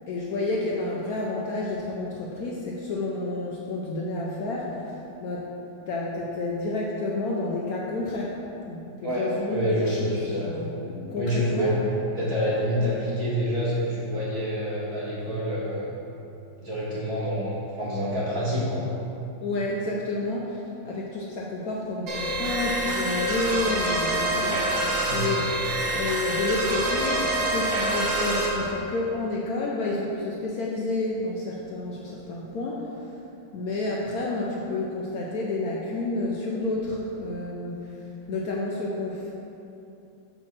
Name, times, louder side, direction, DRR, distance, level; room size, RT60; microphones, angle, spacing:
voice 1, 0.1-5.5 5.9-8.4 8.7-11.7 19.4-25.5 25.9-33.1 33.5-38.0 38.3-39.3, left 2 dB, 65° left, -3 dB, 1.0 m, -30 dB
voice 2, 9.0-10.5 11.2-11.8 12.2-15.9 16.6-18.8 25.1-25.2, equal, 35° right, -8 dB, 1.6 m, -27 dB
sound 1, 22.1-28.5, right 1 dB, 85° right, 1.8 m, -26 dB
5.3 x 4.6 x 5.8 m, 2.8 s
omnidirectional pair, 2.0 m